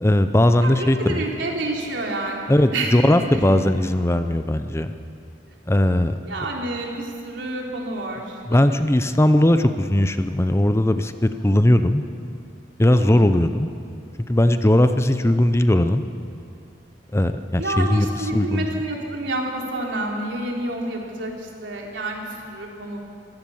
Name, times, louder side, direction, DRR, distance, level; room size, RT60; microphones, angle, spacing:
voice 1, 0.0-1.2 2.5-4.9 5.7-6.2 8.5-12.0 12.8-13.7 14.3-16.0 17.1-18.7, left 1 dB, 15° left, 9 dB, 0.6 m, -18 dB
voice 2, 0.6-3.4 6.2-8.8 13.0-13.2 17.6-23.0, right 1 dB, 80° right, -1 dB, 3.6 m, -29 dB
24.5 x 16.0 x 7.2 m, 2.5 s
head